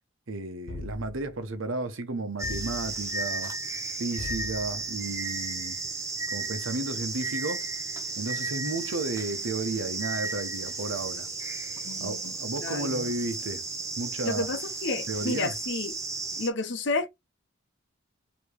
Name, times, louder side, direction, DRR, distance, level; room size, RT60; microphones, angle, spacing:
voice 1, 0.3-3.5 4.0-5.8 6.3-7.7 8.2-11.3 12.0-13.6 14.0-14.5 15.1-15.5, right 2 dB, 80° right, 0.9 m, -33 dB
sound 1, 0.7-1.4 2.4-3.2 4.2-4.9, left 2 dB, 75° left, 1.1 m, -40 dB
sound 2, 2.4-16.5, right 3 dB, 15° right, 0.8 m, -34 dB
voice 2, 11.8-13.1 14.2-15.9 16.4-17.1, left 3 dB, 60° left, 0.8 m, -31 dB
4.8 x 3.0 x 3.2 m
head